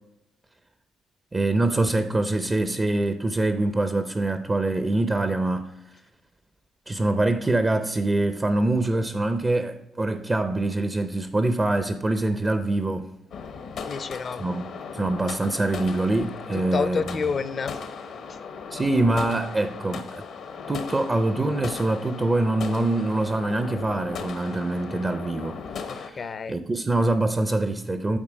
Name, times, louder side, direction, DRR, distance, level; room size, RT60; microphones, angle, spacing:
voice 1, 1.3-5.7 6.9-13.1 14.4-17.3 18.7-20.2 20.7-25.6 25.8-28.2, right 2 dB, 25° right, 0.5 m, -24 dB
sound 1, 13.3-26.1, left 5 dB, 70° left, 0.9 m, -37 dB
voice 2, 13.8-14.5 16.5-17.8 25.9-26.6, left 5 dB, 45° left, 0.5 m, -29 dB
8.8 x 4.2 x 5.1 m
cardioid pair, 90°, 0 cm